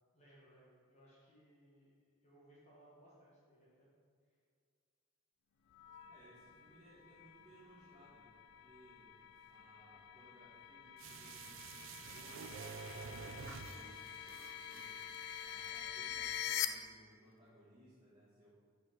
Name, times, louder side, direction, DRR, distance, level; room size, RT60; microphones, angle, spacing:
voice 1, 0.1-1.9 2.2-3.9, right 1 dB, 30° left, -6 dB, 1.2 m, -64 dB
sound 1, 5.7-16.7, left 11 dB, 55° left, 0.4 m, -46 dB
voice 2, 6.1-9.1 9.5-18.5, right 1 dB, 20° right, -12 dB, 1.6 m, -63 dB
sound 2, 11.0-16.0 16.4-16.5, right 5 dB, 60° right, 0.4 m, -50 dB
5.6 x 5.0 x 4.4 m, 2.1 s
head